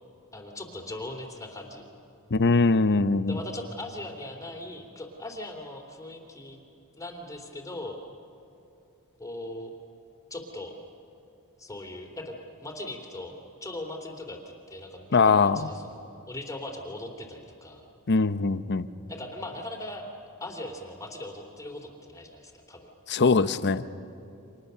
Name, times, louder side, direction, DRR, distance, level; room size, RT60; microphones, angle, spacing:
voice 1, 0.3-1.8 3.3-6.6 6.9-8.0 9.2-9.7 10.3-10.7 11.6-17.9 19.1-20.1 20.4-22.9, left 1 dB, 15° left, 2 dB, 2.8 m, -39 dB
voice 2, 2.3-3.4 15.1-15.7 18.1-18.9 23.1-23.8, left 4 dB, 50° left, 13 dB, 0.8 m, -22 dB
29.5 x 26.5 x 6.8 m, 2.8 s
head